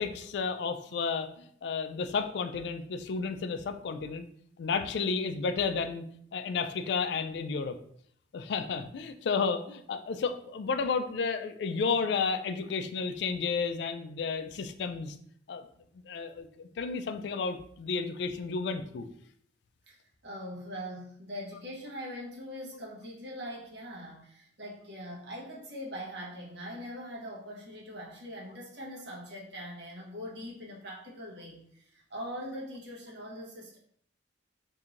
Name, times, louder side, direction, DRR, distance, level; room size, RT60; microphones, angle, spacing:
voice 1, 0.0-4.2 4.6-6.0 6.3-7.8 8.3-15.2 15.5-15.6 16.1-19.1, left 5 dB, 65° left, 9 dB, 0.3 m, -32 dB
voice 2, 20.2-33.8, equal, 65° right, -4 dB, 0.9 m, -42 dB
4.4 x 2.6 x 2.5 m, 0.64 s
head